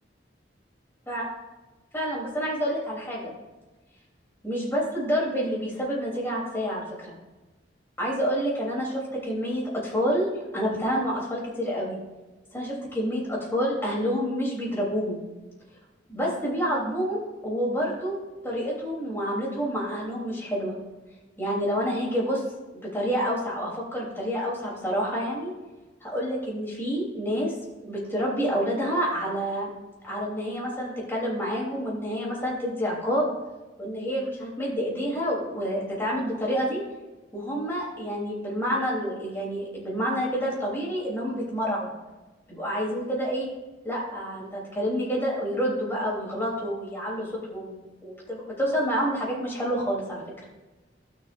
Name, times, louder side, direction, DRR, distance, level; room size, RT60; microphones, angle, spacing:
voice 1, 1.9-3.3 4.4-7.1 8.0-10.3 10.5-12.0 12.5-15.2 16.1-18.1 18.4-20.7 21.4-22.4 22.7-25.5 26.0-29.7 30.0-33.3 33.8-36.8 37.3-41.9 42.5-43.5 43.8-50.2, equal, 15° left, -5 dB, 3.2 m, -28 dB
16.5 x 6.0 x 2.5 m, 1.2 s
head